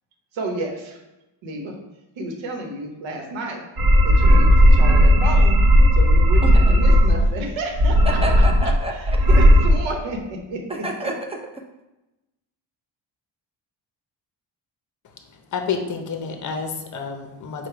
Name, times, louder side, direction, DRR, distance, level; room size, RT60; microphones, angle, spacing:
voice 1, 0.3-1.0 1.4-1.7 2.2-3.7 4.0-5.6 5.9-8.2 9.3-10.8, right 2 dB, 90° right, 1 dB, 1.0 m, -31 dB
sound 1, 3.8-7.3 7.7-8.8 9.1-9.7, equal, 55° right, 1.1 m, -14 dB
voice 2, 6.4-6.7 8.2-9.2 10.7-11.6, right 1 dB, 15° right, 1 dB, 0.5 m, -29 dB
voice 3, 15.5-17.7, left 5 dB, 40° left, 4 dB, 0.6 m, -29 dB
4.8 x 2.2 x 4.5 m, 0.99 s
cardioid pair, 125°, 45 cm